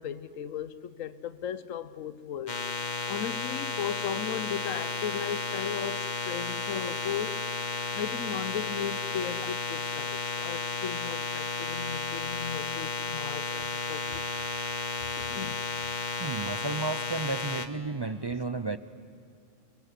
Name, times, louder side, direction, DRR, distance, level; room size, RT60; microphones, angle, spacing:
voice 1, 0.0-2.6 3.1-7.4 7.9-14.2 15.2-15.6, left 8 dB, 85° left, 1.2 m, -36 dB
sound 1, 2.5-17.7, left 4 dB, 35° left, 1.2 m, -33 dB
voice 2, 16.2-18.8, right 3 dB, 40° right, 0.3 m, -32 dB
28.5 x 22.5 x 8.3 m
omnidirectional pair, 1.3 m